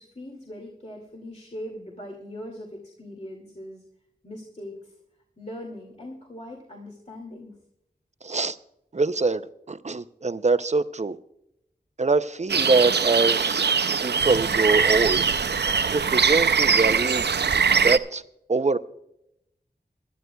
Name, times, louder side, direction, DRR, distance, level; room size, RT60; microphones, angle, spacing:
voice 1, 0.0-3.8 4.2-4.9 5.4-7.5, left 1 dB, 40° left, 2.2 m, -40 dB
voice 2, 8.2-8.6 8.9-11.2 12.0-13.6 14.0-15.2 15.9-17.3 17.7-18.2 18.5-18.8, right 3 dB, 40° right, 0.6 m, -24 dB
sound 1, 12.5-18.0, right 6 dB, 85° right, 0.5 m, -22 dB
23.0 x 12.5 x 2.3 m
wide cardioid pair, 65°, 17 cm